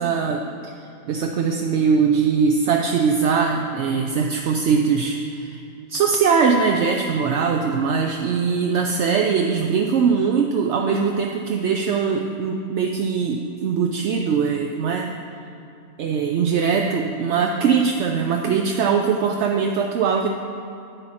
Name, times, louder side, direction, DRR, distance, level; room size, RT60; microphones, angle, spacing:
voice 1, 0.0-5.6 5.9-15.1 16.0-20.3, right 6 dB, 65° right, 2 dB, 0.7 m, -21 dB
10.5 x 7.5 x 4.2 m, 2.7 s
omnidirectional pair, 1.5 m